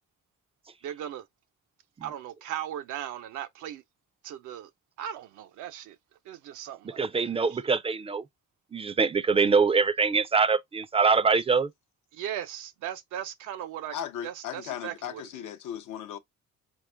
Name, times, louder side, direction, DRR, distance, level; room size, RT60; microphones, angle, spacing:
voice 1, 0.8-1.3 2.0-3.8 4.2-4.7 5.0-6.0 6.3-7.6 12.1-14.0 14.2-15.2, right 10 dB, 80° right, 0.6 m, -38 dB
voice 2, 6.8-8.2 8.7-11.7, right 5 dB, 20° right, 0.3 m, -24 dB
voice 3, 13.9-16.2, left 10 dB, 90° left, 0.7 m, -37 dB
4.3 x 2.3 x 3.2 m
cardioid pair, 90°, 30 cm